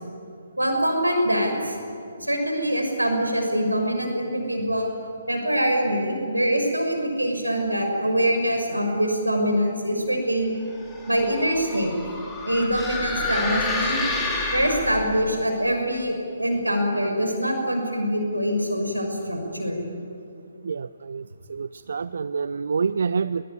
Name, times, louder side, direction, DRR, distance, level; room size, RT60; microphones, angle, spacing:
voice 1, 0.6-1.8 2.2-4.9 5.3-10.5 11.1-11.9 12.4-14.0 14.5-19.8, equal, 90° right, 3 dB, 6.3 m, -24 dB
sound 1, 10.7-15.2, left 3 dB, 10° left, 4.4 m, -29 dB
voice 2, 20.6-23.4, right 5 dB, 60° right, 15 dB, 0.5 m, -27 dB
21.5 x 20.0 x 9.9 m, 2.5 s
figure-of-eight pair, 135°, 0 cm